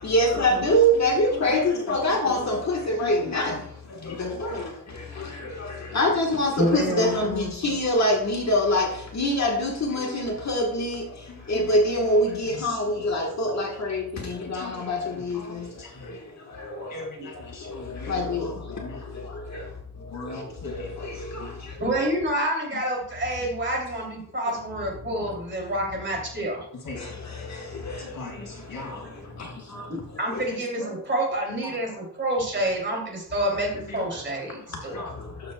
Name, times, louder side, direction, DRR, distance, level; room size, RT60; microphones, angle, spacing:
voice 1, 0.0-3.6 4.0-11.0 11.5-15.7 16.6-16.9 18.1-18.8 19.1-19.2 19.5-19.6 20.3-21.5 22.0-22.1 27.0-28.1 29.4-29.5 30.3-30.5 33.5-33.6 34.9-35.0, equal, 45° left, 1.4 m, -25 dB
voice 2, 3.0-3.3 3.9-4.2 11.3-12.0 12.3-12.8 14.4-16.1 16.9-19.1 20.1-20.9 22.7-22.8 26.8-27.1 28.0-29.1 29.7-29.9 30.7-30.9 31.6-31.8 32.5-32.9 33.7-34.0 34.7-35.2, left 2 dB, 60° left, 2.4 m, -40 dB
voice 3, 6.6-7.2 16.7-16.9 19.5-19.6 20.1-20.3 21.8-26.6 30.2-35.0, right 1 dB, 30° right, 2.8 m, -28 dB
12.5 x 7.5 x 2.2 m
wide cardioid pair, 155°, 37 cm